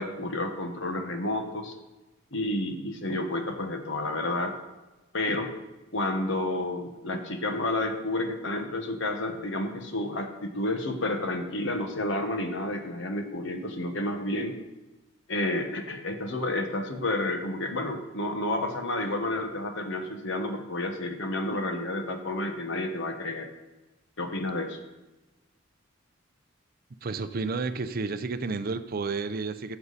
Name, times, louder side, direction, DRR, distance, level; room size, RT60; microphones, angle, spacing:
voice 1, 0.0-1.7 2.3-4.6 5.1-5.5 5.9-14.6 15.3-23.5 24.2-24.8, left 1 dB, 60° left, 5 dB, 1.3 m, -30 dB
voice 2, 27.0-29.8, right 4 dB, 45° right, 11 dB, 0.5 m, -31 dB
14.5 x 7.2 x 4.1 m, 1.1 s
head